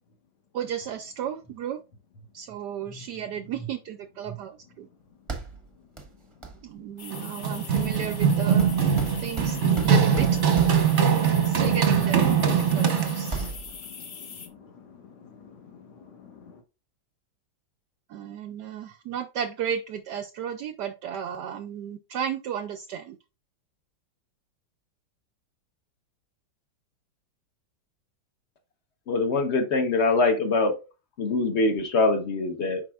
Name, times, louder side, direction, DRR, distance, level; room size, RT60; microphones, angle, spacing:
voice 1, 0.5-1.8 2.3-4.9 6.6-8.8 9.2-10.4 11.4-13.4 18.1-23.2, right 8 dB, 75° right, 0.9 m, -34 dB
sound 1, 5.3-5.7 6.0-6.1 6.4-6.6 7.8-11.0 12.1-12.2 12.7-13.0 13.3-14.0, right 3 dB, 25° right, 0.7 m, -36 dB
sound 2, 7.0-14.5, left 6 dB, 65° left, 0.6 m, -42 dB
Run, 7.1-13.5, right 7 dB, 50° right, 0.9 m, -22 dB
voice 2, 11.0-11.6 12.7-16.6, left 2 dB, 80° left, 2.1 m, -48 dB
voice 3, 29.1-30.7 31.2-32.8, left 3 dB, 45° left, 1.0 m, -23 dB
7.7 x 5.3 x 2.3 m
omnidirectional pair, 2.2 m